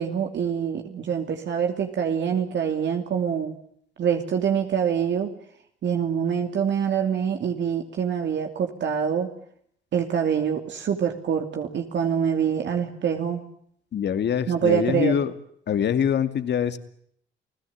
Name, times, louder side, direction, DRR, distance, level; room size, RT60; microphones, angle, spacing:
voice 1, 0.0-3.5 4.0-5.3 5.8-9.3 9.9-13.4 14.5-15.2, right 8 dB, 65° right, 4 dB, 2.8 m, -25 dB
voice 2, 13.9-15.3 15.7-16.8, left 8 dB, 60° left, 11 dB, 2.4 m, -24 dB
29.5 x 17.0 x 8.6 m, 0.68 s
cardioid pair, 90°, 20 cm